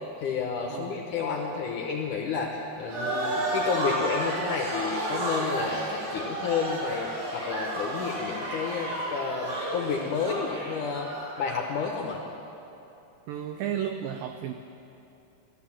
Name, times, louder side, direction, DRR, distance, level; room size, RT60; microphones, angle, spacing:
voice 1, 0.2-11.1 11.4-12.2, left 5 dB, 70° left, 1 dB, 2.0 m, -31 dB
voice 2, 0.7-1.0 13.3-14.5, right 9 dB, 90° right, 7 dB, 2.0 m, -33 dB
sound 1, 2.9-11.6, right 1 dB, 60° right, 4.8 m, -32 dB
15.0 x 12.5 x 7.3 m, 2.8 s
omnidirectional pair, 4.8 m